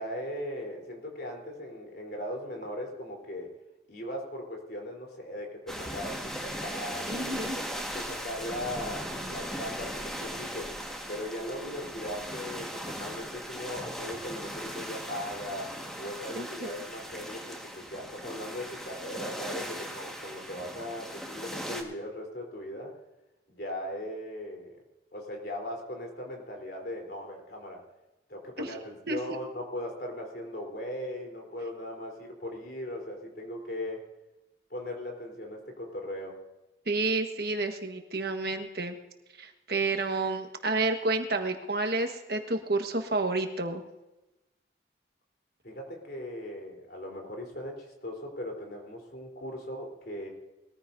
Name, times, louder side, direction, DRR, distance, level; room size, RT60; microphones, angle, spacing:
voice 1, 0.0-3.5 3.9-10.8 11.1-22.9 23.5-24.8 25.1-27.8 28.3-34.0 34.7-36.4 45.6-50.3, left 1 dB, 60° left, 1 dB, 3.7 m, -38 dB
sound 1, 5.7-21.8, equal, 5° left, 1.5 m, -38 dB
voice 2, 7.1-7.6 16.3-16.7 28.6-28.7 29.1-29.2 36.9-39.0 39.4-43.8, right 3 dB, 60° right, 5 dB, 1.4 m, -30 dB
21.0 x 14.5 x 2.7 m, 1.0 s
head